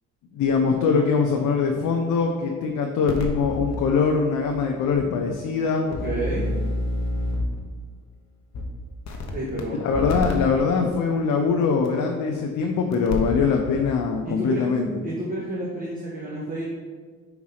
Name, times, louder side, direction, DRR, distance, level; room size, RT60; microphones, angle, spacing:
voice 1, 0.3-5.9 9.8-14.9, left 5 dB, 80° left, 2 dB, 0.7 m, -22 dB
sound 1, 3.1-3.8 4.5-4.6 4.9-5.0 5.9-7.6 8.5-8.6 9.1-9.6 9.9-10.3 11.8-11.9 12.9-13.4 13.7-13.8, left 2 dB, 65° left, 1.1 m, -28 dB
voice 2, 5.9-6.5 9.3-9.8 14.2-14.7 15.0-16.7, right 1 dB, 25° right, -6 dB, 1.5 m, -30 dB
4.9 x 4.6 x 5.7 m, 1.5 s
cardioid pair, 90°, 30 cm